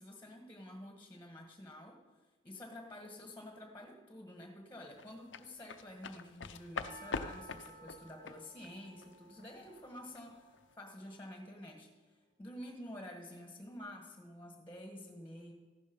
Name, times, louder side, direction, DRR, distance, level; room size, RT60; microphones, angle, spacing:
voice 1, 0.0-2.0 2.4-15.5, left 1 dB, 10° left, 3 dB, 1.5 m, -50 dB
sound 1, 5.0-10.2 10.5-10.7, left 4 dB, 75° left, 0.7 m, -43 dB
Percussion, 6.8-11.2 11.4-11.5, right 2 dB, 40° right, 1.6 m, -57 dB
15.0 x 12.0 x 5.3 m, 1.3 s
head